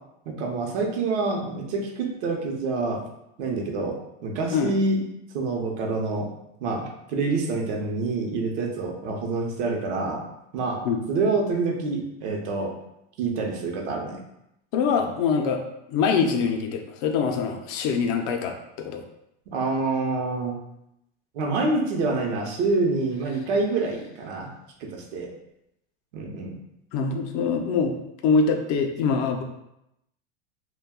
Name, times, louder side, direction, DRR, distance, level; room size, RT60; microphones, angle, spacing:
voice 1, 0.3-3.0 3.4-5.0 5.3-6.3 6.6-10.2 10.5-10.8 11.1-12.7 13.2-14.2 19.5-20.6 21.3-24.5 24.8-25.3 26.1-26.6, right 3 dB, 75° right, 1 dB, 0.8 m, -27 dB
voice 2, 14.7-15.6 15.9-19.0 26.9-27.9 28.2-29.4, left 5 dB, 55° left, 4 dB, 0.5 m, -24 dB
2.2 x 2.2 x 3.5 m, 0.83 s
supercardioid pair, 110°, 35 cm